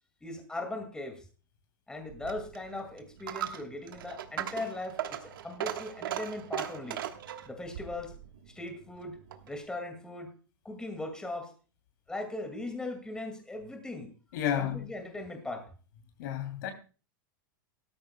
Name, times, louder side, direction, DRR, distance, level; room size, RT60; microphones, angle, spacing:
voice 1, 0.2-1.2 1.9-7.0 7.5-8.2 8.6-9.2 9.5-10.3 10.6-11.5 12.1-15.7, left 2 dB, 5° left, 2.1 m, -39 dB
Coin (dropping), 2.1-9.6, right 11 dB, 80° right, 1.3 m, -39 dB
voice 2, 14.3-14.8 16.2-16.7, left 10 dB, 65° left, 2.9 m, -31 dB
17.0 x 13.5 x 2.2 m
supercardioid pair, 135°, 11 cm